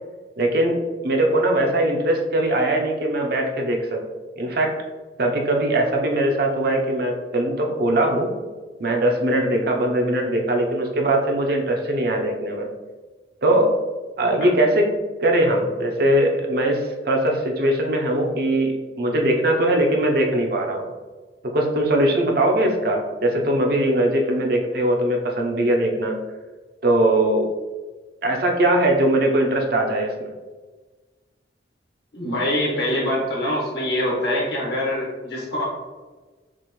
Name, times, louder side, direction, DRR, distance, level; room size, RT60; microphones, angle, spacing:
voice 1, 0.4-0.8 1.0-4.0 4.4-4.7 5.2-8.3 8.8-12.7 13.4-13.7 14.2-14.9 15.2-20.8 21.5-26.2 26.8-27.5 28.2-30.3, right 1 dB, 55° right, 1 dB, 0.6 m, -21 dB
voice 2, 32.1-35.7, left 1 dB, 60° left, -4 dB, 1.5 m, -24 dB
6.0 x 2.5 x 3.1 m, 1.3 s
head